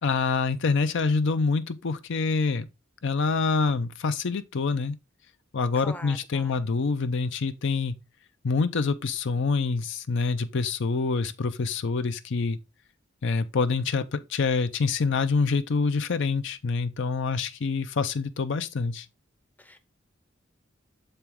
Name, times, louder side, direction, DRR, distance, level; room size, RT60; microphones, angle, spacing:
voice 1, 0.0-2.7 3.0-5.0 5.5-8.0 8.4-12.6 13.2-19.1, left 4 dB, 65° left, 0.6 m, -26 dB
voice 2, 5.8-6.7 19.6-19.8, left 1 dB, 10° left, 0.6 m, -43 dB
7.0 x 4.4 x 3.6 m
head